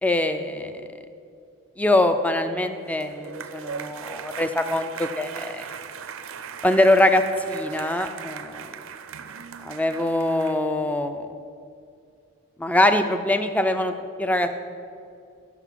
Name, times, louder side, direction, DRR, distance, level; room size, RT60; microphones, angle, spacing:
voice 1, 0.0-0.9 1.8-5.7 6.6-8.7 9.6-11.3 12.6-13.9 14.2-14.5, left 1 dB, 5° left, 8 dB, 0.4 m, -23 dB
sound 1, 2.7-10.6, right 7 dB, 70° right, 0.5 m, -38 dB
10.5 x 6.0 x 7.4 m, 2.5 s
head